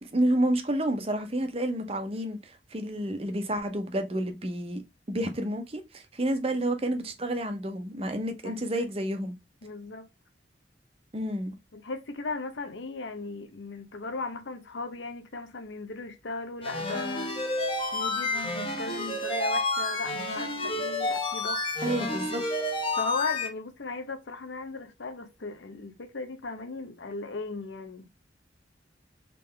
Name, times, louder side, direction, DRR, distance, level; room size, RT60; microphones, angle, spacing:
voice 1, 0.0-4.8 5.1-9.3 11.1-11.6 21.8-22.7, right 1 dB, 35° right, 0.8 m, -30 dB
voice 2, 8.4-8.8 9.6-10.1 11.7-17.4 17.9-22.0 23.0-28.1, left 3 dB, 90° left, 0.8 m, -37 dB
sound 1, 16.6-23.5, left 2 dB, 30° left, 1.0 m, -30 dB
3.8 x 3.3 x 3.3 m
head